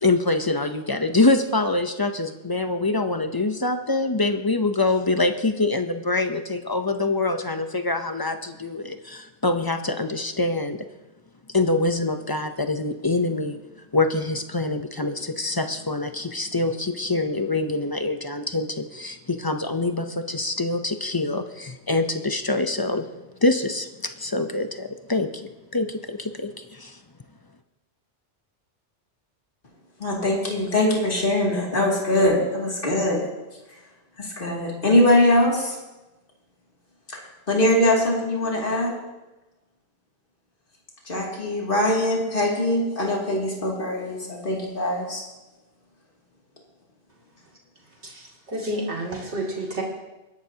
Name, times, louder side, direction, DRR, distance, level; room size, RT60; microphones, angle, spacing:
voice 1, 0.0-10.8 11.5-13.6 13.9-23.1 23.4-27.0, left 2 dB, 25° left, 7 dB, 0.5 m, -25 dB
voice 2, 30.0-33.2 34.2-35.8 37.1-37.2 37.5-39.0 41.0-45.2, left 1 dB, 50° left, -3 dB, 2.7 m, -22 dB
voice 3, 48.0-49.8, right 1 dB, 75° right, -3 dB, 2.9 m, -30 dB
22.5 x 11.5 x 2.8 m, 1.1 s
omnidirectional pair, 1.2 m